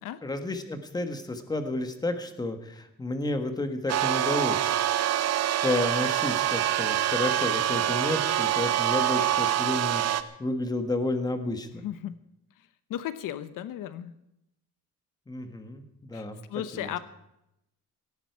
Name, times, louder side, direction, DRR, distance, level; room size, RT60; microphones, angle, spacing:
voice 1, 0.2-4.7 5.6-11.9 15.3-15.8 16.1-16.4 16.7-16.9, left 2 dB, 10° left, 8 dB, 1.4 m, -31 dB
sound 1, 3.9-10.2, right 12 dB, 50° right, 0.8 m, -25 dB
voice 2, 11.8-12.2 12.9-14.1 16.1-16.2 16.5-17.0, left 11 dB, 75° left, 14 dB, 0.9 m, -35 dB
18.0 x 15.5 x 4.7 m, 0.82 s
cardioid pair, 170°, 33 cm